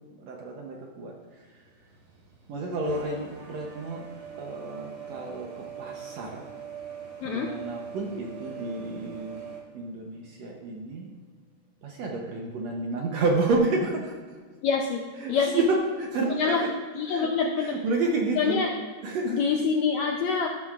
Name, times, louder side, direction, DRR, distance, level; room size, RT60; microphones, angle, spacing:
voice 1, 0.2-1.1 2.5-4.1 4.4-6.5 7.2-9.4 9.7-11.1 11.8-14.1 15.2-16.7 17.1-17.3 17.6-18.6 19.0-19.4, right 2 dB, 70° right, 0 dB, 1.7 m, -30 dB
sound 1, 1.3-9.6, right 7 dB, 90° right, 3.6 m, -43 dB
voice 2, 14.6-15.0 15.3-15.6 16.4-16.6 16.9-17.8 18.4-18.7 19.3-20.5, left 5 dB, 80° left, 1 dB, 1.6 m, -25 dB
13.0 x 12.0 x 2.4 m, 1.5 s
omnidirectional pair, 3.9 m